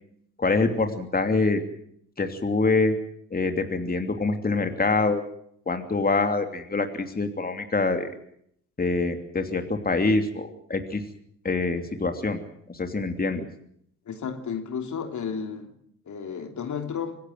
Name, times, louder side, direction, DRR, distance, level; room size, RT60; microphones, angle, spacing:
voice 1, 0.4-1.6 2.2-3.0 3.3-5.2 5.7-8.1 8.8-11.0 11.4-12.4 12.7-13.4, left 3 dB, 25° left, 6 dB, 3.0 m, -25 dB
voice 2, 14.1-15.7 16.1-17.2, left 6 dB, 50° left, 5 dB, 3.2 m, -32 dB
25.5 x 16.5 x 7.8 m, 0.69 s
hypercardioid pair, 50°, 37 cm